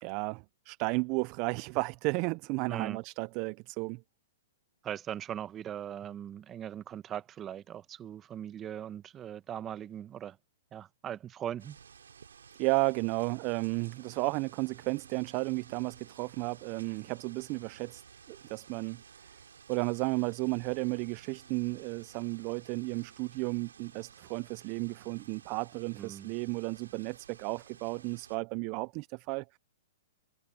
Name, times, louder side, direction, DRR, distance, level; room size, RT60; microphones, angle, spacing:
voice 1, 0.0-4.0 12.6-18.0 18.3-19.0 19.7-29.6, right 29 dB, 40° right, 0.4 m, -33 dB
voice 2, 2.7-3.0 4.8-10.4 10.7-11.8 26.0-26.3, right 10 dB, 20° right, 1.0 m, -40 dB
sound 1, 11.6-28.4, right 7 dB, 90° right, 3.7 m, -55 dB
hypercardioid pair, 140°, 0 cm